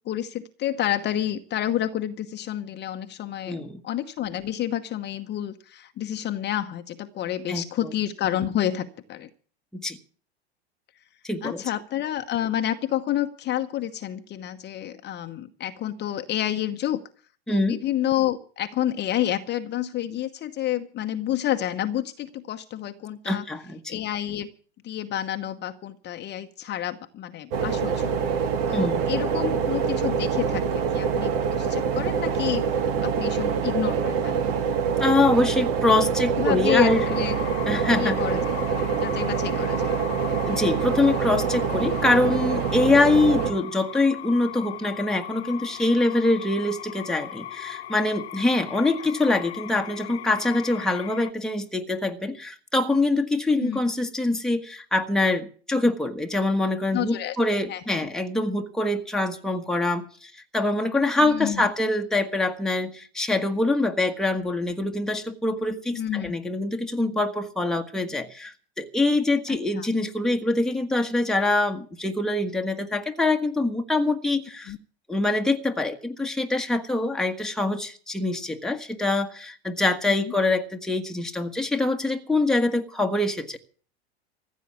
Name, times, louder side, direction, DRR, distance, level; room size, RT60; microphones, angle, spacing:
voice 1, 0.0-9.3 11.4-17.0 17.5-23.4 23.9-24.5 24.8-28.1 28.7-32.6 33.0-34.5 36.4-37.4 37.9-38.4 39.0-40.0 53.6-53.8 56.9-58.1 61.2-61.7 65.9-66.4 69.5-69.9 74.7-74.8 80.1-80.3, left 12 dB, 30° left, 1.0 m, -29 dB
voice 2, 3.5-3.8 7.5-7.9 9.7-10.0 11.2-11.6 17.5-17.8 23.2-24.0 28.7-29.0 35.0-37.0 37.7-38.2 40.4-74.7 75.1-83.6, left 2 dB, ahead, 1.4 m, -24 dB
sound 1, 27.5-43.5, right 6 dB, 65° right, 2.0 m, -25 dB
sound 2, 36.7-51.3, left 13 dB, 75° left, 0.9 m, -38 dB
15.0 x 8.3 x 8.4 m
hypercardioid pair, 90°, 32 cm